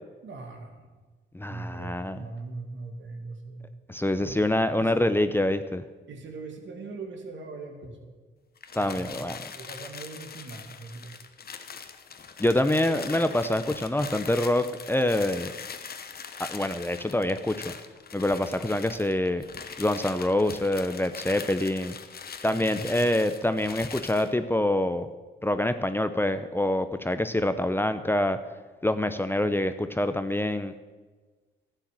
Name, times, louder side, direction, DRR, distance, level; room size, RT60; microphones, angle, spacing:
voice 1, 0.2-0.9 1.5-3.7 4.2-4.4 4.8-4.9 6.1-8.2 8.8-11.2 12.6-13.2 22.5-23.1, right 3 dB, 65° right, 4 dB, 2.3 m, -40 dB
voice 2, 1.3-2.2 3.9-5.8 8.7-9.4 12.4-15.5 16.4-17.7 18.1-19.4 19.8-22.0 22.4-25.1 25.4-28.4 28.8-30.7, left 1 dB, 10° left, 10 dB, 0.7 m, -26 dB
sound 1, 8.6-24.3, left 6 dB, 50° left, 1.0 m, -42 dB
11.5 x 9.1 x 7.5 m, 1.3 s
cardioid pair, 65°, 20 cm